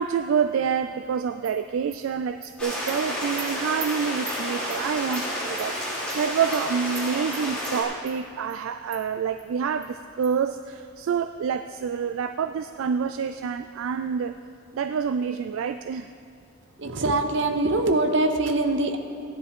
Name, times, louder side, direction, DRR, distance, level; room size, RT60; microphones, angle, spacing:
voice 1, 0.0-14.4 14.7-16.1 16.9-17.0, right 7 dB, 75° right, 10 dB, 0.3 m, -27 dB
Animal, 1.4-1.5 1.9-2.0 2.4-2.5 2.9-3.0 3.4-3.5 3.8-3.9 4.3-4.4 4.7-4.8 5.1-5.2 5.6-5.7 6.1-6.2 6.5-6.6 6.9-7.1 7.3-7.7 8.1-8.2 8.5-8.6 8.9-9.0 9.4-9.5 9.8-9.9 10.2-10.3, right 6 dB, 35° right, 1.5 m, -39 dB
sound 1, 2.6-7.8, equal, 5° left, 3.3 m, -30 dB
voice 2, 16.8-19.0, right 2 dB, 60° right, 6 dB, 0.9 m, -23 dB
16.0 x 10.5 x 3.6 m, 2.4 s
head